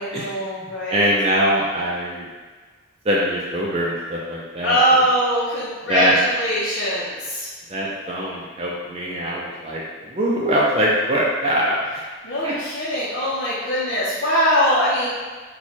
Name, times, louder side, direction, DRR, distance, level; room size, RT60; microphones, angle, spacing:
voice 1, 0.0-1.1 4.6-7.5 12.2-15.1, equal, 65° left, -10 dB, 0.8 m, -21 dB
voice 2, 0.6-2.3 3.0-5.0 5.9-6.2 7.7-12.0 12.4-12.6, equal, 30° right, -4 dB, 0.4 m, -23 dB
4.3 x 2.2 x 4.3 m, 1.4 s
head